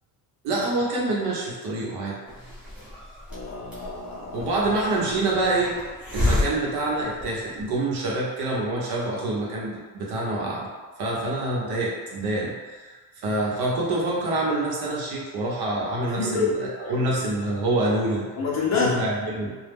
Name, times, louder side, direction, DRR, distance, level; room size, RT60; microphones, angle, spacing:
voice 1, 0.4-2.2 4.3-5.7 6.1-10.7 11.0-13.0 13.2-18.3 18.7-19.6, right 2 dB, 65° right, -4 dB, 0.8 m, -26 dB
Hiss, 2.3-7.8, left 1 dB, 5° right, 0.9 m, -31 dB
voice 2, 3.3-4.5 16.2-16.9 18.4-19.0, left 4 dB, 40° left, -4 dB, 0.7 m, -27 dB
2.2 x 2.0 x 3.4 m, 1.4 s
cardioid pair, 115°, 41 cm